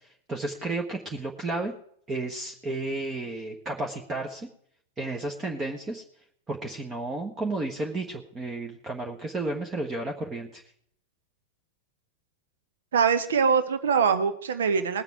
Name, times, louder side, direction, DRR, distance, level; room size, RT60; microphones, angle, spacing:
voice 1, 0.3-1.7 2.1-4.5 5.0-6.0 6.5-10.6, right 2 dB, 20° right, 2 dB, 1.4 m, -32 dB
voice 2, 12.9-15.0, right 6 dB, 65° right, 10 dB, 1.2 m, -23 dB
20.0 x 7.5 x 4.7 m, 0.67 s
figure-of-eight pair, 90°, 0 cm